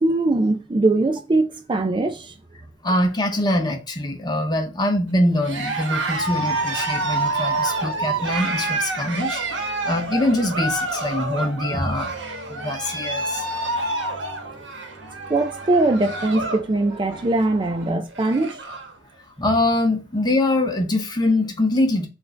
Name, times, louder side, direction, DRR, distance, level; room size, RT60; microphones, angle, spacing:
voice 1, 0.0-2.3 15.3-18.6, right 2 dB, 25° right, 0.4 m, -21 dB
voice 2, 2.8-12.1 12.5-13.4 19.4-22.1, left 1 dB, 25° left, 0.8 m, -23 dB
Cheering, 5.4-16.7 17.0-17.4 17.8-17.9 18.1-18.9, right 2 dB, 90° right, 1.0 m, -28 dB
sound 1, 6.2-17.9, equal, ahead, 1.8 m, -46 dB
4.4 x 2.6 x 4.4 m
head